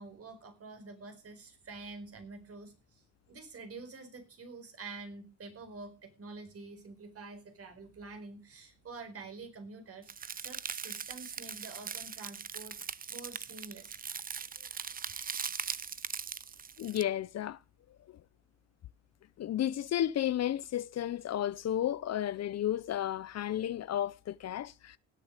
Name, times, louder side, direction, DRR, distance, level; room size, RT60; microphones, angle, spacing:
voice 1, 0.0-3.0 3.3-12.8 13.1-14.0, right 3 dB, 50° right, 4.8 m, -47 dB
sound 1, 10.1-17.0, right 6 dB, 30° right, 0.7 m, -40 dB
voice 2, 16.8-17.6 18.1-18.2 19.4-25.0, left 11 dB, 60° left, 0.7 m, -33 dB
17.5 x 8.6 x 6.6 m
cardioid pair, 90°, 30 cm